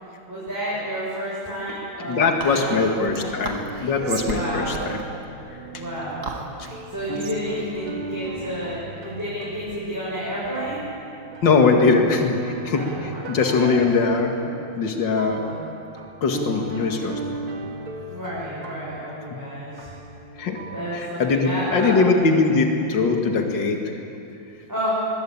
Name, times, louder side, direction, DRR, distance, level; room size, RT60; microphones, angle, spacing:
voice 1, 0.3-3.3 4.2-4.9 5.7-6.4 6.9-10.8 12.7-13.8 15.3-15.6 18.1-19.9 20.7-22.0 24.7-24.9, equal, 10° right, -8 dB, 6.3 m, -31 dB
voice 2, 2.1-5.0 11.4-15.4 16.2-17.2 20.4-20.6 20.9-23.8, left 4 dB, 60° left, 3 dB, 2.7 m, -21 dB
Whispering, 2.4-9.1, right 4 dB, 50° right, 2.3 m, -37 dB
sound 1, 3.5-22.1, right 3 dB, 85° right, 2.7 m, -37 dB
23.5 x 22.5 x 8.8 m, 2.8 s
omnidirectional pair, 2.2 m